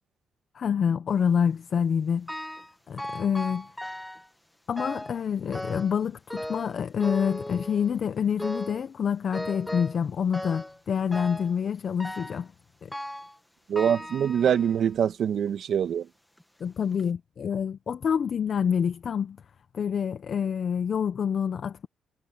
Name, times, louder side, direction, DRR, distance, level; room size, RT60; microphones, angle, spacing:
voice 1, 0.5-2.3 2.9-3.7 4.7-12.5 12.8-12.9 16.6-19.4 19.7-21.9, left 7 dB, 50° left, 0.9 m, -27 dB
sound 1, 2.3-2.7 3.0-4.3 4.8-5.2 5.5-6.0 6.3-8.0 8.4-8.9 9.3-10.0 10.3-10.8 11.1-11.5 12.0-12.4 12.9-13.4 13.8-14.8 15.5-15.6 16.4-16.5 16.9-17.0, left 1 dB, 5° left, 2.0 m, -37 dB
voice 2, 13.7-16.1, right 8 dB, 65° right, 1.7 m, -24 dB
cardioid pair, 90°, 0 cm